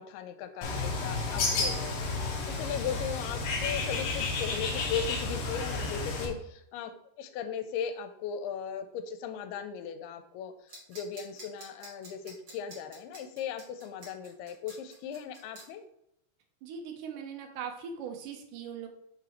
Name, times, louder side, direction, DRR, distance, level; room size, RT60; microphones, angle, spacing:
voice 1, 0.0-15.8, left 7 dB, 85° left, 9 dB, 2.6 m, -38 dB
Bird, 0.6-6.3, left 3 dB, 70° left, 1.7 m, -31 dB
sound 1, 10.7-15.6, right 2 dB, 35° right, 2.4 m, -49 dB
voice 2, 16.6-18.9, right 7 dB, 75° right, 4 dB, 2.0 m, -40 dB
6.4 x 4.2 x 4.3 m, 0.77 s
omnidirectional pair, 4.5 m